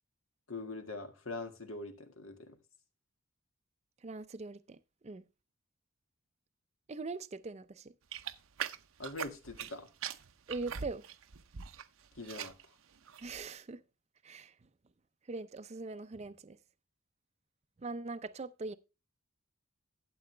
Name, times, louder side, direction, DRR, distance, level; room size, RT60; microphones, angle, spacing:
voice 1, 0.5-2.6 9.0-9.9 12.2-12.5, left 2 dB, 80° left, 1.9 m, -43 dB
voice 2, 4.0-4.8 5.0-5.3 6.9-7.9 10.5-11.0 13.2-13.8 14.2-14.5 15.3-16.6 17.8-18.8, right 3 dB, 30° right, 0.5 m, -41 dB
sound 1, 8.1-9.7 10.0-11.9 12.1-12.6 13.1-13.4, right 8 dB, 80° right, 0.7 m, -41 dB
12.5 x 7.8 x 3.3 m
head